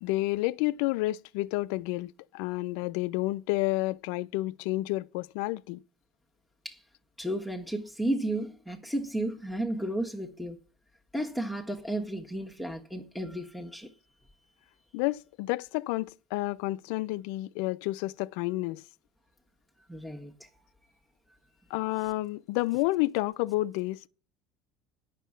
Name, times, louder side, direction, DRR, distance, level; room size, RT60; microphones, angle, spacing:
voice 1, 0.0-5.8 14.9-18.8 21.7-24.1, left 19 dB, 70° left, 0.4 m, -30 dB
voice 2, 7.2-10.6 11.1-13.9 19.9-20.6, right 1 dB, ahead, 1.3 m, -33 dB
9.1 x 6.4 x 7.2 m
hypercardioid pair, 80°, 0 cm